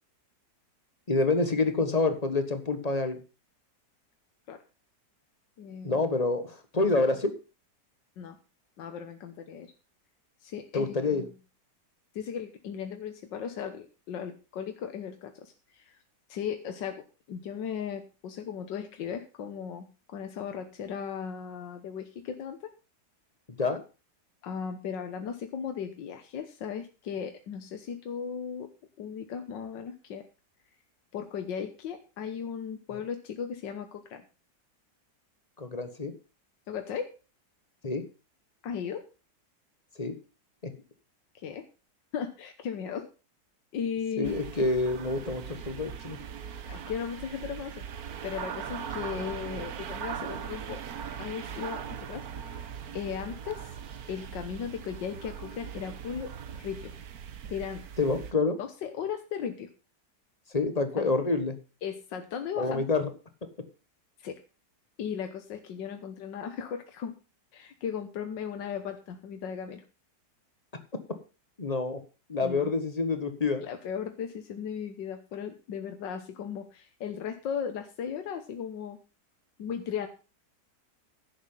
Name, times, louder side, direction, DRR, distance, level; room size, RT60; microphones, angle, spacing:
voice 1, 1.1-3.2 5.8-7.3 10.7-11.2 23.6-23.8 35.6-36.1 37.8-38.0 40.0-40.1 40.6-40.7 44.2-46.2 58.0-58.6 60.5-61.6 62.6-63.1 71.6-72.0 72.3-73.6, left 3 dB, 25° left, 8 dB, 1.4 m, -27 dB
voice 2, 5.6-6.1 7.0-7.1 8.2-8.4 8.8-9.7 10.4-11.3 12.2-16.0 16.3-19.9 20.1-22.7 24.4-28.7 29.0-30.3 31.1-34.2 36.7-37.1 38.6-39.1 41.4-41.6 42.1-43.1 43.7-44.6 46.7-47.8 48.2-50.8 51.2-52.7 52.9-53.8 54.1-56.3 56.6-56.9 57.5-57.9 58.6-59.7 61.0-61.1 61.8-62.9 64.2-64.4 65.0-67.1 67.5-69.8 72.4-72.7 73.6-79.0 79.6-80.1, left 7 dB, 85° left, 6 dB, 1.8 m, -36 dB
sound 1, 44.2-58.3, right 8 dB, 60° right, 1.4 m, -40 dB
11.0 x 8.0 x 5.5 m, 0.32 s
omnidirectional pair, 1.9 m